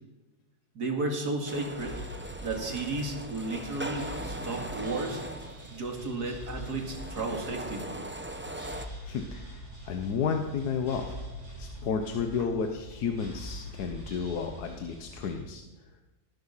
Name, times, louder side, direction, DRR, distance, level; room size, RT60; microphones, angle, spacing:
voice 1, 0.7-2.0 2.4-5.2 5.7-7.8 12.4-12.5, right 2 dB, 90° right, 3 dB, 2.7 m, -33 dB
sound 1, 1.5-8.9, right 1 dB, 10° right, 0.6 m, -40 dB
sound 2, 1.7-15.4, equal, 30° right, 5.9 m, -44 dB
voice 2, 9.1-11.2 11.6-15.6, left 6 dB, 85° left, 5 dB, 1.5 m, -32 dB
18.5 x 10.5 x 5.7 m, 1.1 s
omnidirectional pair, 1.6 m